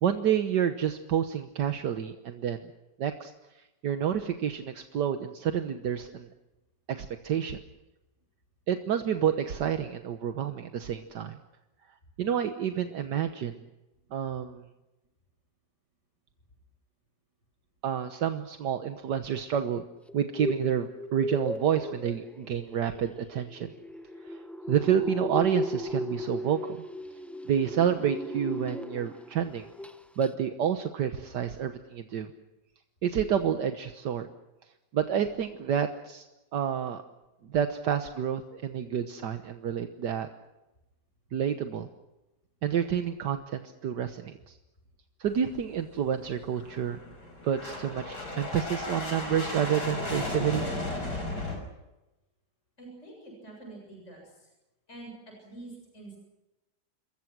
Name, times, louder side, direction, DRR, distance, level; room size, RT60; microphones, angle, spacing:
voice 1, 0.0-2.6 3.0-3.3 3.8-6.3 6.9-7.6 8.7-11.4 12.2-13.6 14.1-14.6 17.8-19.8 20.1-23.7 24.2-24.4 24.7-26.8 27.5-29.7 30.2-32.3 33.0-34.3 34.9-36.3 36.5-37.0 37.4-40.3 41.3-41.9 42.6-44.6 45.2-47.1 47.4-50.7, right 8 dB, 75° right, 7 dB, 1.7 m, -29 dB
sound 1, 20.1-29.3 29.6-29.9 30.2-30.3, equal, ahead, 0.8 m, -36 dB
sound 2, 45.3-51.6, left 2 dB, 70° left, 6.3 m, -35 dB
voice 2, 52.8-54.5 54.9-56.2, right 2 dB, 40° left, 1 dB, 7.9 m, -46 dB
28.0 x 22.5 x 6.1 m, 0.99 s
omnidirectional pair, 1.8 m